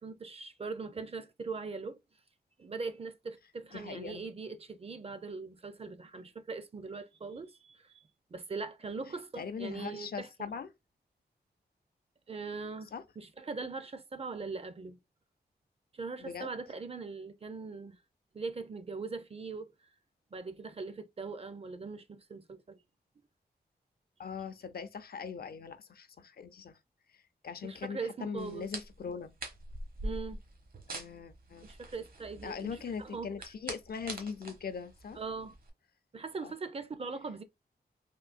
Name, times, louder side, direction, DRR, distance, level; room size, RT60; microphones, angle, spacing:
voice 1, 0.0-2.0 2.6-8.0 8.3-10.5 12.3-15.0 15.9-18.0 18.3-19.7 20.3-22.8 27.6-28.7 30.0-30.4 31.6-33.3 35.2-35.6 36.1-37.4, right 4 dB, 35° right, 0.5 m, -41 dB
voice 2, 3.7-4.3 9.4-10.7 12.9-13.0 16.2-16.5 24.2-26.8 27.1-29.3 30.9-31.6 32.4-35.2 36.4-36.5, left 6 dB, 65° left, 0.5 m, -41 dB
sound 1, 28.4-35.7, right 2 dB, 55° right, 1.0 m, -44 dB
3.7 x 2.6 x 2.5 m
wide cardioid pair, 105°, 17 cm